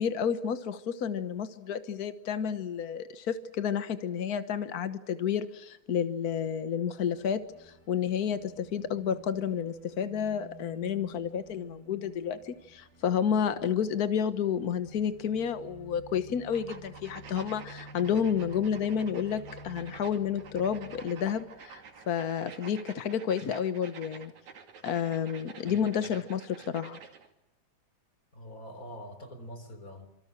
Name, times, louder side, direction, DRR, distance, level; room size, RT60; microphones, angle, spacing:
voice 1, 0.0-24.3 24.8-27.0, left 8 dB, 75° left, 12 dB, 0.8 m, -30 dB
sound 1, 6.6-22.7, right 1 dB, 25° right, 6.5 m, -52 dB
Marker Drawing Noise, 16.5-27.3, right 6 dB, 70° right, 3.8 m, -49 dB
voice 2, 25.6-26.1 28.3-30.1, equal, 25° left, 9 dB, 4.1 m, -45 dB
27.0 x 25.0 x 7.5 m, 0.87 s
omnidirectional pair, 3.4 m